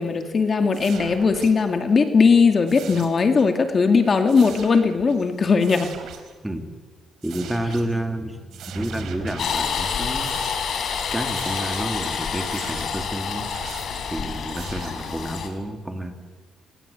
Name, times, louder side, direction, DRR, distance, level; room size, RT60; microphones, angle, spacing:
voice 1, 0.0-5.9, left 5 dB, 40° left, 6 dB, 2.3 m, -19 dB
sound 1, 0.7-1.7 2.7-3.5 3.9-5.3 5.6-6.4 7.2-8.0 8.5-9.8 10.1-10.8 11.3-12.0 12.4-13.0 13.5-14.0 14.5-15.3, right 8 dB, 75° right, 3.9 m, -41 dB
voice 2, 7.2-10.4 11.1-13.5 14.1-16.1, right 1 dB, 5° right, 5 dB, 3.3 m, -30 dB
sound 2, 9.4-15.5, left 6 dB, 65° left, 4.6 m, -28 dB
27.0 x 21.0 x 8.8 m, 1.4 s
cardioid pair, 90°, 0 cm